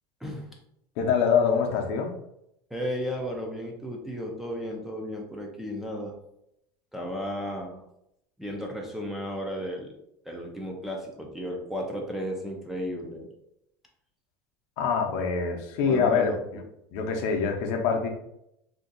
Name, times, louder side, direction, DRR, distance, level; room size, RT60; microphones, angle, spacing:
voice 1, 1.0-2.1 14.8-16.6 16.9-18.1, left 6 dB, 60° left, 3 dB, 0.6 m, -25 dB
voice 2, 2.7-6.1 6.9-7.8 8.4-9.9 10.3-13.3 15.8-16.4, equal, 5° right, -1 dB, 0.4 m, -34 dB
2.6 x 2.3 x 3.8 m, 0.79 s
cardioid pair, 160°, 12 cm